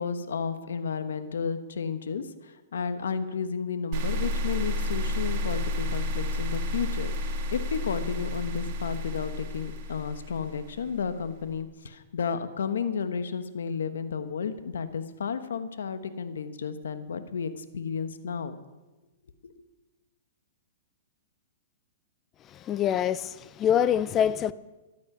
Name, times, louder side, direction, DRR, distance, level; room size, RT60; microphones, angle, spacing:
voice 1, 0.0-18.6 19.4-19.6, left 6 dB, 90° left, 1.2 m, -32 dB
sound 1, 3.9-11.0, left 1 dB, 45° right, 2.8 m, -31 dB
voice 2, 22.5-24.5, left 9 dB, 25° left, 0.6 m, -25 dB
14.0 x 12.0 x 6.1 m
hypercardioid pair, 145°, 0 cm